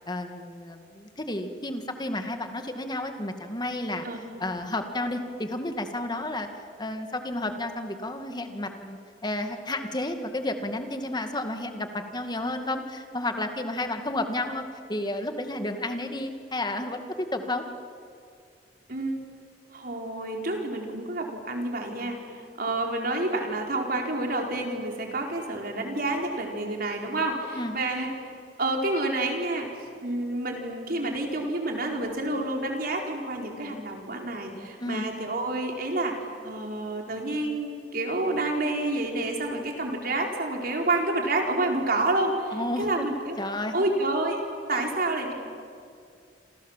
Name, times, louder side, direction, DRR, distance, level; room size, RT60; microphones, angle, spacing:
voice 1, 0.1-4.1 4.4-17.6 27.6-27.8 34.8-35.0 42.5-43.1 43.4-43.7, left 1 dB, 25° left, 6 dB, 2.1 m, -32 dB
voice 2, 19.7-28.1 28.6-29.7 30.0-36.1 36.4-43.4 43.7-44.4 44.7-45.3, right 2 dB, 55° right, 1 dB, 4.6 m, -29 dB
27.5 x 27.5 x 7.5 m, 2.3 s
head